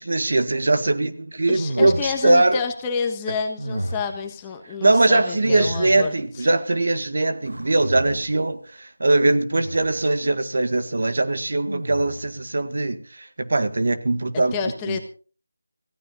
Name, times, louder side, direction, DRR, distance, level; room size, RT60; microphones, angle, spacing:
voice 1, 0.0-2.6 4.8-15.0, right 2 dB, 55° right, 1.9 m, -21 dB
voice 2, 1.5-6.5 14.3-15.0, left 5 dB, 15° left, 1.4 m, -29 dB
sound 1, 1.5-2.5 3.6-4.3 5.4-6.3 7.4-8.5 9.5-10.1 11.7-12.4, right 1 dB, 90° right, 1.3 m, -32 dB
25.0 x 15.5 x 2.7 m
figure-of-eight pair, 165°, 0 cm